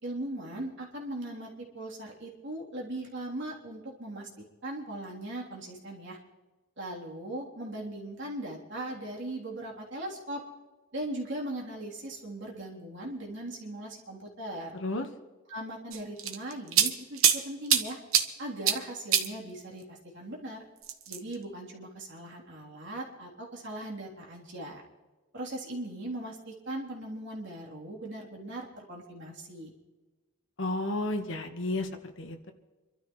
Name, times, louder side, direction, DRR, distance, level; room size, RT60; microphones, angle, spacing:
voice 1, 0.0-6.2 6.8-10.4 10.9-14.8 15.5-18.0 18.4-20.6 21.1-24.8 25.3-29.7, right 1 dB, 60° right, -3 dB, 3.4 m, -39 dB
voice 2, 14.7-15.1 30.6-31.9 32.2-32.5, left 2 dB, 65° left, 5 dB, 1.4 m, -32 dB
sound 1, 15.9-17.4 17.7-18.3 18.7-18.8 19.1-19.3 20.8-21.3, right 9 dB, 85° right, 1.2 m, -23 dB
26.5 x 12.5 x 3.2 m, 1.2 s
head